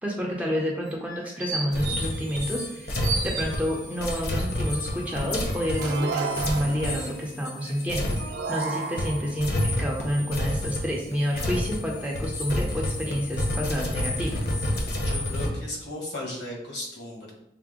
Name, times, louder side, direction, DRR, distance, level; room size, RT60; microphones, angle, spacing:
voice 1, 0.0-3.0 3.2-8.1 8.5-14.4, equal, 10° right, -3 dB, 0.6 m, -29 dB
sound 1, 0.8-2.7 3.0-4.0 4.6-7.2 7.7-7.8, right 3 dB, 45° right, 0.8 m, -36 dB
sound 2, 1.7-8.7 9.0-15.5, left 1 dB, 65° left, 0.9 m, -30 dB
sound 3, 5.7-7.1 8.2-9.5, right 4 dB, 75° right, 0.3 m, -32 dB
voice 2, 15.0-17.3, left 1 dB, 85° left, -2 dB, 1.4 m, -36 dB
5.7 x 2.1 x 3.6 m, 0.80 s
head